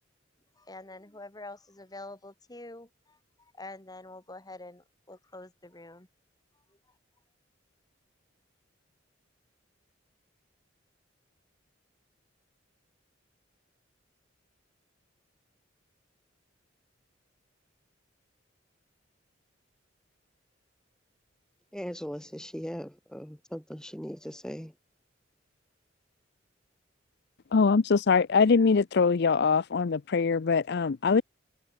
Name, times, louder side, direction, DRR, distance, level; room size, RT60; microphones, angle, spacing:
voice 1, 0.6-6.1, left 2 dB, 20° left, 2.7 m, -46 dB
voice 2, 21.7-24.7, equal, 5° left, 3.7 m, -39 dB
voice 3, 27.5-31.2, left 5 dB, 60° left, 0.5 m, -23 dB
head